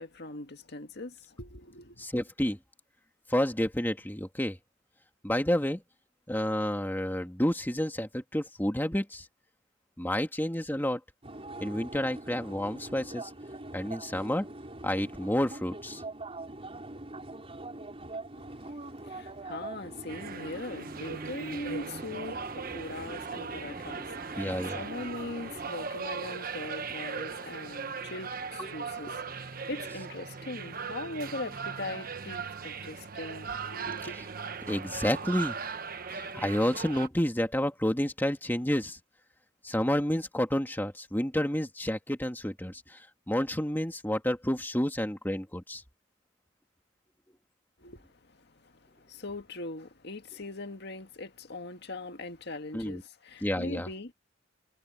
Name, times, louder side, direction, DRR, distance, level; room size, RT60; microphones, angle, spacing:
voice 1, 0.0-2.1 18.3-34.2 47.8-54.1, left 2 dB, 60° left, 1.9 m, -41 dB
voice 2, 2.0-2.6 3.3-4.6 5.2-5.8 6.3-9.2 10.0-11.0 11.6-13.3 13.7-14.5 14.8-16.0 24.4-24.8 28.6-28.7 29.1-29.2 34.7-35.6 36.3-39.0 39.6-43.0 43.3-45.8 52.7-53.0 53.4-53.9, left 1 dB, 10° left, 2.0 m, -30 dB
sound 1, 11.2-25.7, right 2 dB, 30° right, 4.8 m, -43 dB
sound 2, 20.1-37.1, right 5 dB, 50° right, 1.1 m, -39 dB
head